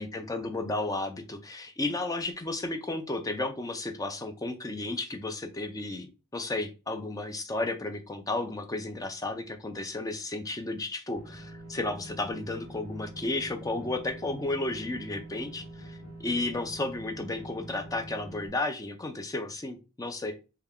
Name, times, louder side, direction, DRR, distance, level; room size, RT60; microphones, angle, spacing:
voice 1, 0.0-20.3, left 2 dB, 15° left, 6 dB, 0.4 m, -33 dB
sound 1, 11.1-18.5, right 1 dB, 65° left, 1.0 m, -45 dB
3.3 x 2.2 x 3.5 m, 0.31 s
head